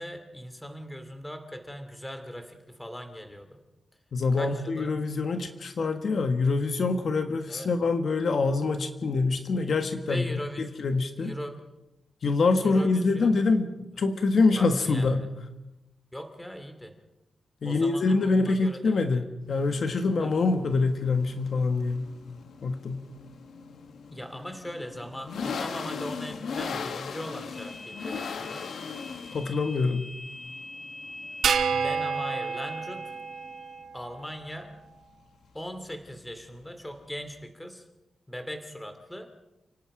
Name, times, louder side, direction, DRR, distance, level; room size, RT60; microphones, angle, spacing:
voice 1, 0.0-3.6 4.3-4.9 7.5-7.7 10.1-10.8 11.2-11.6 12.6-13.4 14.6-15.3 16.1-16.9 17.6-19.2 19.9-20.4 24.1-28.7 31.7-33.2 33.9-34.7 35.5-37.8 38.3-39.3, equal, 5° left, 7 dB, 2.5 m, -39 dB
voice 2, 4.1-10.3 10.6-11.3 12.2-15.3 17.6-22.1 22.6-23.1 29.3-30.1, left 3 dB, 55° left, 7 dB, 1.4 m, -25 dB
sound 1, 19.5-37.4, left 5 dB, 85° left, 1.4 m, -40 dB
sound 2, 27.5-33.8, left 1 dB, 25° left, 1.9 m, -43 dB
sound 3, 31.4-34.0, right 6 dB, 80° right, 1.1 m, -29 dB
30.0 x 18.0 x 5.0 m, 0.98 s
wide cardioid pair, 130°, 0 cm